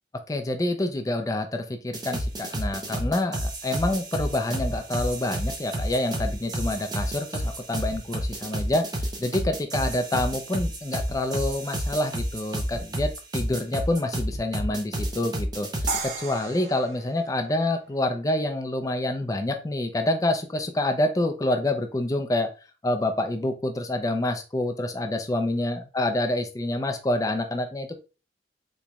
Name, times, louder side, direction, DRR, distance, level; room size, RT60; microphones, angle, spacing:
voice 1, 0.3-8.9 9.2-22.5 22.8-28.0, left 1 dB, 20° left, 5 dB, 0.4 m, -27 dB
sound 1, 1.9-16.0, equal, 20° right, 0.6 m, -30 dB
sound 2, 15.9-18.9, right 3 dB, 75° right, 0.8 m, -36 dB
3.9 x 3.0 x 2.2 m, 0.32 s
head